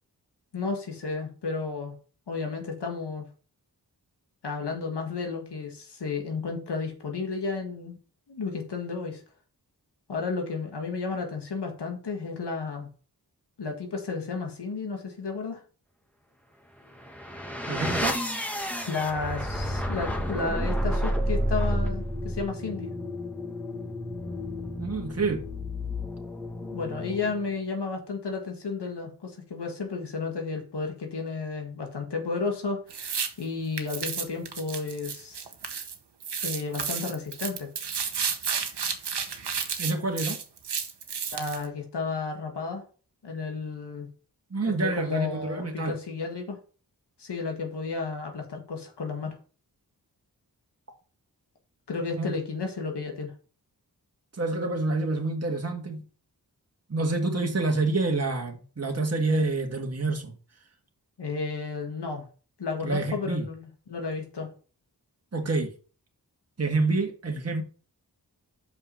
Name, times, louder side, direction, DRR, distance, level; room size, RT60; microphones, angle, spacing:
voice 1, 0.5-2.0 2.3-3.3 4.4-8.0 8.3-9.2 10.1-12.9 13.6-15.6 18.8-22.9 26.6-35.5 36.4-37.7 41.3-42.8 43.2-44.1 44.6-46.6 47.2-49.4 51.9-53.3 61.2-62.3 62.6-64.5, left 4 dB, 85° left, 1.8 m, -32 dB
sound 1, 16.9-27.6, equal, 5° left, 1.7 m, -31 dB
voice 2, 17.7-18.2 24.8-25.4 39.8-40.4 44.5-45.9 52.2-52.3 54.3-56.0 56.9-60.3 62.8-63.5 65.3-65.7 66.6-67.6, right 3 dB, 40° right, 1.6 m, -27 dB
sound 2, 32.9-33.3 33.8-35.9 36.2-41.6, right 6 dB, 80° right, 1.1 m, -32 dB
5.9 x 5.4 x 5.6 m
cardioid pair, 45°, 40 cm